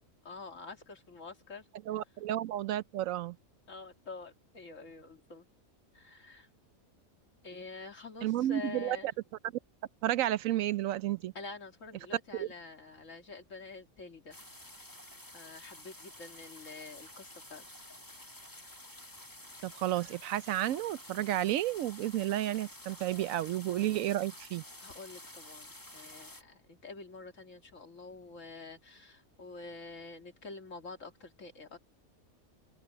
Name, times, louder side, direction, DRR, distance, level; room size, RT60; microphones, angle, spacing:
voice 1, 0.2-1.7 3.7-5.5 5.9-6.5 7.4-9.1 11.3-14.4 15.3-17.8 23.8-24.1 24.8-31.8, left 4 dB, 65° left, 2.7 m, -47 dB
voice 2, 1.9-3.4 8.2-9.0 10.0-11.3 12.4-12.5 19.6-24.6, right 13 dB, 75° right, 1.0 m, -31 dB
sound 1, 14.3-26.4, left 1 dB, 15° left, 1.9 m, -50 dB
open air
omnidirectional pair, 1.4 m